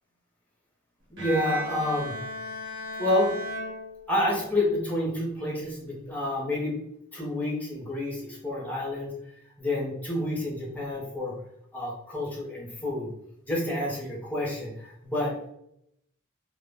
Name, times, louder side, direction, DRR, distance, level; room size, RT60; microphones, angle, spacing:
voice 1, 1.1-2.1 3.0-3.3 4.1-6.7 7.1-9.1 9.6-11.3 11.7-13.1 13.4-15.3, left 1 dB, 10° left, -4 dB, 0.6 m, -29 dB
Bowed string instrument, 1.2-4.5, equal, 60° right, 0.7 m, -36 dB
2.1 x 2.1 x 3.3 m, 0.77 s
head